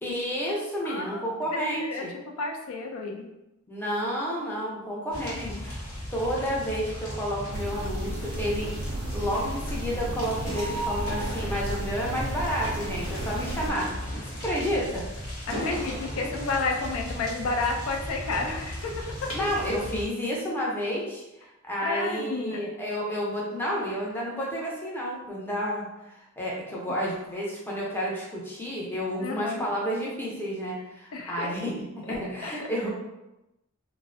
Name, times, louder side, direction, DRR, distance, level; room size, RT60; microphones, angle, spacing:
voice 1, 0.0-2.1 3.7-5.8 6.1-8.7 9.1-13.9 14.3-15.0 19.3-32.9, equal, 10° left, -5 dB, 0.5 m, -30 dB
voice 2, 0.8-1.4 1.8-2.1 2.4-3.2 5.2-5.6 15.5-19.3 21.8-22.7 29.2-29.7 31.1-31.6 32.0-32.2 32.4-32.7, left 3 dB, 75° left, 2 dB, 0.4 m, -31 dB
sound 1, 5.1-20.1, left 1 dB, 90° left, 0.8 m, -37 dB
sound 2, 6.3-17.5 18.1-18.2, equal, 50° left, 0.9 m, -42 dB
sound 3, 7.5-13.7, right 1 dB, 60° right, 0.3 m, -34 dB
2.4 x 2.0 x 2.5 m, 0.94 s
head